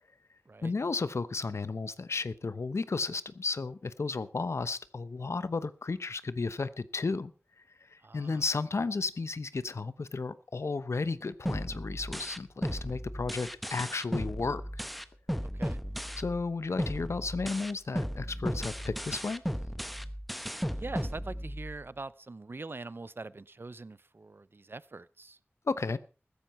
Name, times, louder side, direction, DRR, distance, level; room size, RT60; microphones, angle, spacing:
voice 1, 0.6-7.3 7.9-14.8 16.2-19.4 25.7-26.0, left 4 dB, 90° left, 0.9 m, -33 dB
voice 2, 8.0-8.4 15.4-15.8 20.7-25.4, right 3 dB, 55° right, 0.6 m, -43 dB
sound 1, 11.5-16.5 16.8-21.8, equal, ahead, 1.0 m, -35 dB
15.5 x 13.5 x 4.3 m
wide cardioid pair, 65°, 5 cm